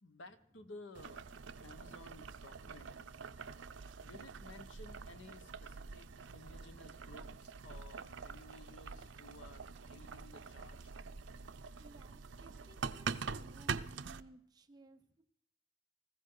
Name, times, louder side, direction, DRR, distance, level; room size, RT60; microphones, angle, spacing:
voice 1, 0.0-1.3 1.6-3.1 4.0-10.9, left 2 dB, 85° left, 9 dB, 1.3 m, -56 dB
Boiling, 0.9-14.2, right 5 dB, 80° right, 0.6 m, -45 dB
voice 2, 11.8-15.2, right 2 dB, 20° right, 5 dB, 1.1 m, -59 dB
20.0 x 15.0 x 3.9 m, 0.70 s
head